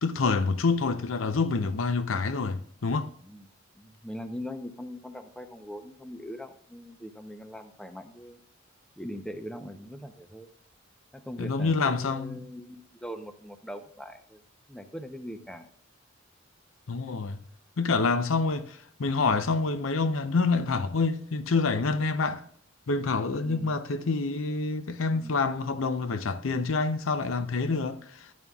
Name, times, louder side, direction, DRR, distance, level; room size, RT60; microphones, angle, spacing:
voice 1, 0.0-3.1 11.4-12.4 16.9-17.4 17.8-22.5 22.9-28.3, left 4 dB, 80° left, 0.6 m, -27 dB
voice 2, 3.8-8.4 9.0-10.5 11.1-14.4 14.7-15.7 23.4-23.8 25.1-25.4, equal, 5° left, 0.6 m, -41 dB
11.0 x 10.5 x 2.3 m
head